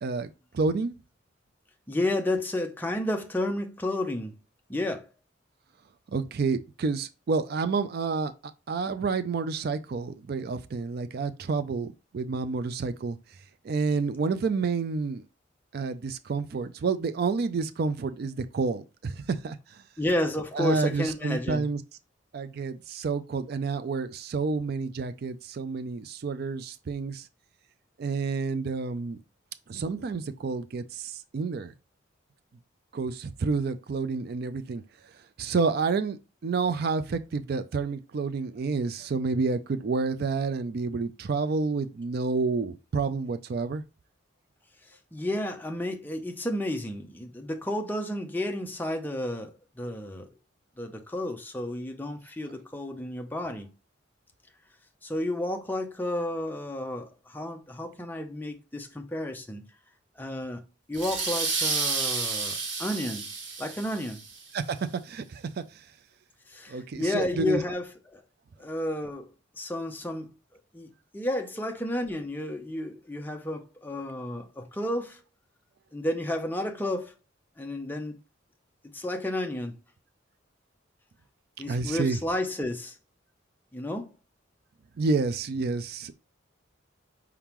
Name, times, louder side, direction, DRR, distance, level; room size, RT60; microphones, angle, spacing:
voice 1, 0.0-1.0 6.1-8.3 8.7-13.2 13.6-15.2 15.7-19.8 20.5-21.8 22.3-27.3 28.0-29.2 29.7-31.7 32.9-34.8 35.4-43.8 64.5-65.8 66.7-67.6 81.7-82.2 85.0-86.1, right 4 dB, 55° right, 0.4 m, -29 dB
voice 2, 1.9-4.3 4.7-5.1 20.0-21.7 45.1-50.3 50.8-53.7 55.0-59.6 60.2-60.6 60.9-63.3 63.6-64.2 66.5-68.2 68.6-69.3 69.6-70.3 70.7-75.2 75.9-77.1 77.6-78.2 78.8-79.7 81.6-83.0 83.7-84.1, left 1 dB, 10° left, 0.6 m, -31 dB
sound 1, 60.9-64.4, right 4 dB, 75° right, 1.3 m, -30 dB
4.8 x 3.6 x 3.0 m
head